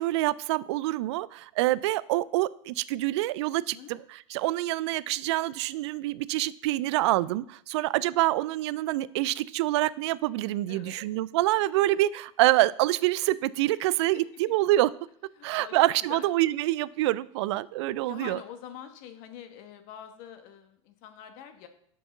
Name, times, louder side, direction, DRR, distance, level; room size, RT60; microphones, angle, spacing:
voice 1, 0.0-14.9 15.4-18.4, right 16 dB, 55° right, 19 dB, 0.4 m, -26 dB
voice 2, 10.7-11.0 14.1-14.2 15.4-16.3 18.1-21.7, left 9 dB, 50° left, 8 dB, 1.2 m, -45 dB
6.0 x 4.8 x 6.6 m, 0.66 s
hypercardioid pair, 95°, 17 cm